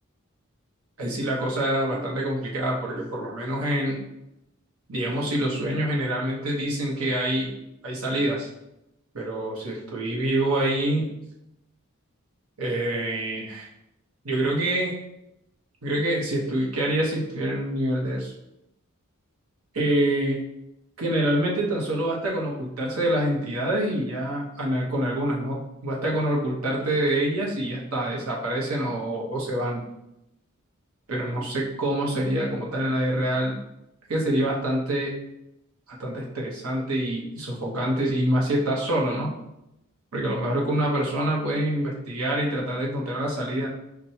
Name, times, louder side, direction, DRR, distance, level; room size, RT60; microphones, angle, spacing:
voice 1, 1.0-4.0 4.9-7.5 7.8-8.5 9.1-11.1 12.6-13.7 14.2-14.9 15.8-18.3 19.7-20.4 21.0-29.8 31.1-33.5 34.1-35.1 35.9-39.3 40.1-43.7, right 1 dB, 80° right, -3 dB, 1.0 m, -26 dB
5.9 x 2.2 x 2.8 m, 0.87 s
head